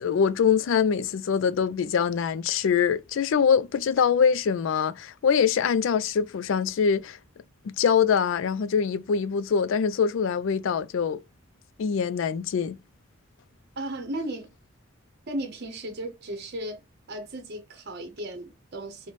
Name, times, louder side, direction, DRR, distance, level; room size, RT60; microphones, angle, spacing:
voice 1, 0.0-7.2 7.6-11.2 11.8-12.8, left 6 dB, 65° left, 0.3 m, -24 dB
voice 2, 13.8-14.5 15.3-16.8 17.1-19.1, right 1 dB, 50° right, 0.7 m, -35 dB
4.0 x 2.1 x 3.1 m
head